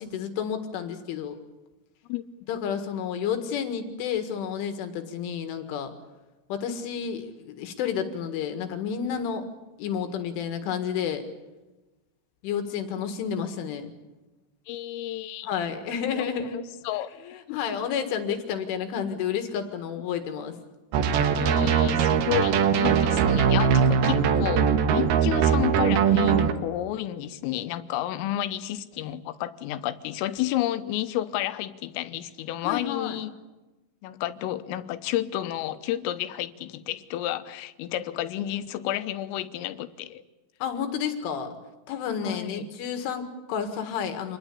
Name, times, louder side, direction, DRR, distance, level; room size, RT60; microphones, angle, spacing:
voice 1, 0.0-1.4 2.5-5.9 6.5-9.5 9.8-11.2 12.4-13.9 15.4-16.6 17.5-20.6 32.6-33.2 40.6-41.6 41.9-44.4, left 7 dB, 75° left, 7 dB, 4.2 m, -30 dB
voice 2, 14.7-15.5 16.1-17.1 17.5-17.8 21.3-33.3 34.0-40.2 42.2-42.7, left 13 dB, 90° left, 11 dB, 3.7 m, -31 dB
sound 1, 20.9-26.5, right 7 dB, 65° right, 2.7 m, -21 dB
27.5 x 21.0 x 8.4 m, 1.1 s
omnidirectional pair, 5.8 m